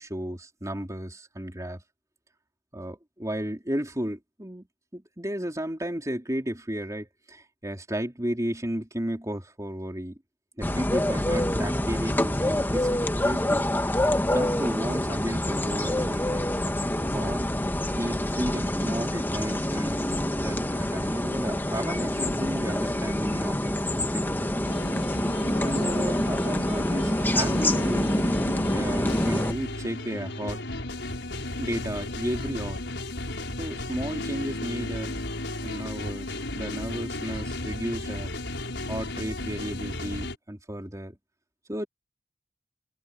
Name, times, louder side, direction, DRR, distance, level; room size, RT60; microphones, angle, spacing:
voice 1, 0.0-1.8 2.7-4.7 4.9-10.2 10.6-12.9 13.2-13.6 14.3-16.6 16.9-17.5 18.0-24.5 25.6-28.2 28.7-30.6 31.6-32.8 33.6-35.1 35.6-38.3 38.9-41.2 41.7-41.9, equal, 20° right, 3.8 m, -33 dB
sound 1, 10.6-29.5, left 1 dB, 10° left, 1.5 m, -26 dB
sound 2, 24.6-40.4, left 2 dB, 80° left, 5.3 m, -34 dB
head